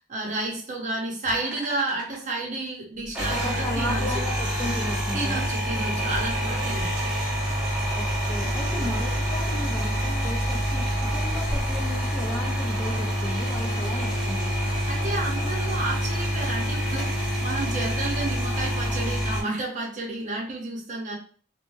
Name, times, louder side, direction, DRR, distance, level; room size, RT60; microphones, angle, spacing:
voice 1, 0.1-4.2 5.1-7.1 8.7-8.9 14.9-21.1, right 2 dB, 40° right, -1 dB, 0.7 m, -31 dB
sound 1, 1.2-2.4 3.0-19.4, equal, 5° right, 0.8 m, -27 dB
voice 2, 3.3-5.5 7.9-14.5, left 1 dB, 15° left, 0 dB, 0.4 m, -35 dB
2.5 x 2.2 x 3.0 m, 0.43 s
head